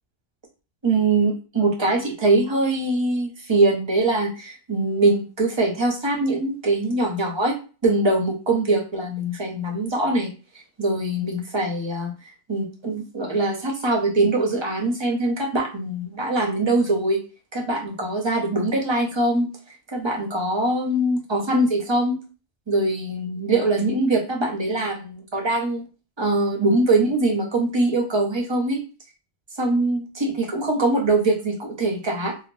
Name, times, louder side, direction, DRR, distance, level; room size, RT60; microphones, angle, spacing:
voice 1, 0.8-7.5 7.8-10.3 10.8-12.1 12.5-17.2 17.5-19.5 19.9-22.2 22.7-25.8 26.2-28.8 29.6-32.3, right 2 dB, 30° right, 1 dB, 0.6 m, -22 dB
3.0 x 2.4 x 2.5 m, 0.35 s
omnidirectional pair, 1.1 m